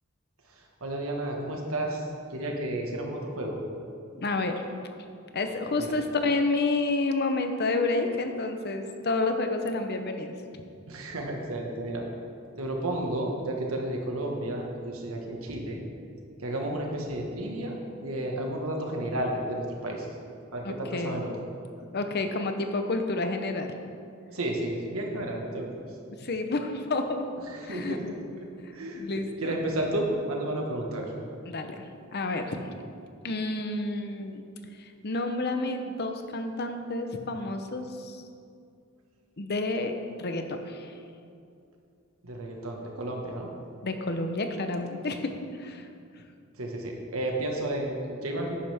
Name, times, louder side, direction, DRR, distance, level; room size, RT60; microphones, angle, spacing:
voice 1, 0.8-2.0 2.3-3.5 5.8-5.9 10.9-12.0 12.6-15.8 16.4-20.1 20.5-21.3 24.3-25.7 27.5-28.0 28.4-29.0 29.4-31.1 42.2-43.5 46.6-48.6, right 1 dB, 90° right, 0 dB, 1.6 m, -32 dB
voice 2, 4.2-4.6 5.3-10.6 20.6-21.2 21.9-23.7 26.2-27.3 27.6-28.0 28.6-29.6 31.4-31.8 32.1-32.6 33.2-34.4 34.8-38.2 39.4-40.9 43.8-45.3 45.6-45.9, left 2 dB, 50° left, 6 dB, 0.8 m, -30 dB
11.5 x 9.9 x 3.5 m, 2.4 s
head